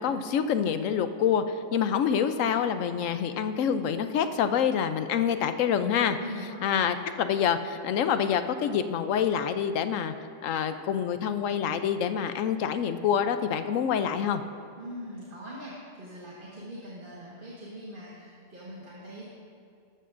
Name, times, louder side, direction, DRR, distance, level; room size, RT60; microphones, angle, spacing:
voice 1, 0.0-6.2 6.6-10.1 10.4-14.4, left 8 dB, 75° left, 10 dB, 0.9 m, -26 dB
voice 2, 6.2-6.6 14.8-19.2, equal, 40° right, -6 dB, 1.6 m, -42 dB
13.5 x 13.0 x 2.6 m, 2.3 s
omnidirectional pair, 1.4 m